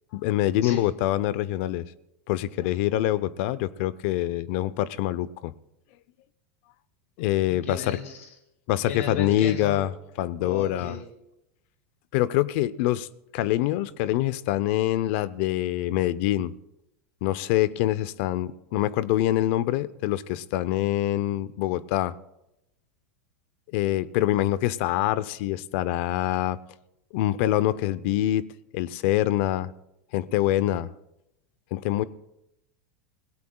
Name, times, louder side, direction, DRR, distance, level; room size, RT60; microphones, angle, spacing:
voice 1, 0.1-1.8 2.3-5.5 7.2-8.0 8.7-9.9 10.2-11.0 12.1-13.1 13.3-16.5 17.2-22.1 23.7-26.6 27.1-28.5 28.7-29.7 30.1-30.9 31.7-32.0, left 14 dB, 60° left, 18 dB, 0.6 m, -25 dB
voice 2, 7.7-8.2 8.9-9.9 10.4-11.0, left 6 dB, 85° left, 5 dB, 1.9 m, -34 dB
26.0 x 17.5 x 2.3 m, 0.88 s
hypercardioid pair, 115°, 7 cm